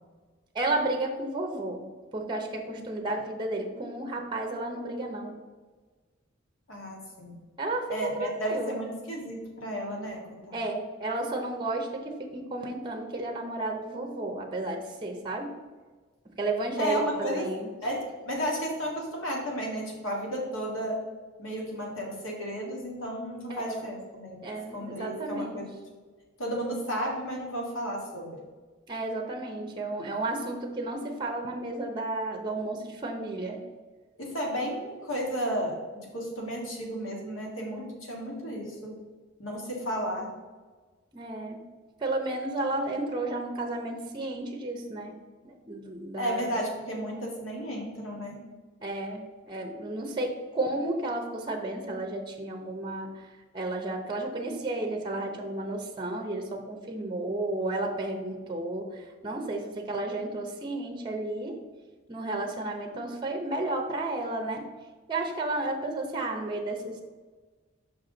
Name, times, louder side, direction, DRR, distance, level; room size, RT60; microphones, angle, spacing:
voice 1, 0.5-1.8 2.1-5.3 7.6-7.9 8.2-8.7 10.5-15.5 16.4-17.7 23.5-23.8 24.4-25.6 28.9-33.6 41.1-41.6 42.0-45.1 45.4-46.6 48.8-53.1 53.5-61.5 62.1-64.6 65.1-67.0, right 2 dB, 25° right, 3 dB, 0.7 m, -32 dB
voice 2, 6.7-7.4 7.9-10.2 10.5-10.6 16.8-17.4 17.8-21.0 21.4-24.4 24.7-25.8 26.4-28.4 34.2-39.0 39.4-40.3 46.2-48.4, equal, 70° left, -1 dB, 1.9 m, -33 dB
6.0 x 5.6 x 3.9 m, 1.3 s
head